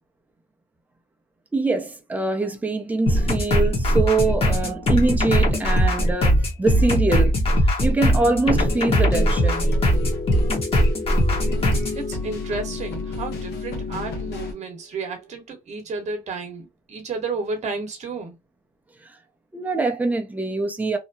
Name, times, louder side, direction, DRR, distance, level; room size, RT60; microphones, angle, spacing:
voice 1, 1.5-7.3 7.8-9.7 19.5-21.0, right 3 dB, 10° right, 0.6 m, -23 dB
sound 1, 3.1-12.0, equal, 35° left, 1.1 m, -20 dB
sound 2, 8.5-14.5, left 3 dB, 75° left, 1.0 m, -31 dB
voice 2, 11.9-18.4, right 4 dB, 45° right, 1.0 m, -32 dB
2.9 x 2.1 x 2.6 m
cardioid pair, 110°, 17 cm